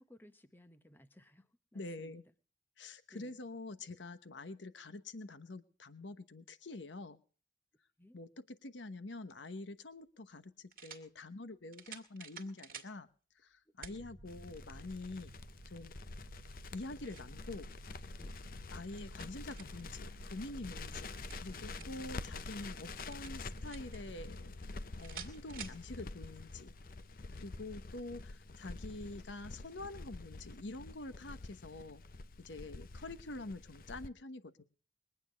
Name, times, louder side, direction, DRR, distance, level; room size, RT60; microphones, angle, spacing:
voice 1, 0.0-2.2 3.1-3.4 8.0-8.2 13.8-14.0 18.2-18.6 20.9-21.1 21.8-22.3 32.7-32.9, equal, 10° left, 10 dB, 0.9 m, -60 dB
voice 2, 1.7-2.2 2.8-7.2 8.1-13.1 13.4-15.3 15.7-15.9 16.7-17.7 18.7-21.1 21.4-26.7 27.3-32.0 32.4-34.6, left 2 dB, 80° left, 12 dB, 1.0 m, -46 dB
sound 1, 9.5-9.6 10.7-11.1 11.7-12.9 13.8-14.0 14.6-14.7 16.5-17.3 18.7-19.9 21.0-22.0 23.1-24.0 25.0-25.8, right 7 dB, 50° right, 1.9 m, -50 dB
sound 2, 13.9-24.3, right 1 dB, 75° right, 1.4 m, -54 dB
Crackle, 14.3-34.1, left 3 dB, 50° left, 0.6 m, -48 dB
22.0 x 9.0 x 5.1 m, 0.40 s
head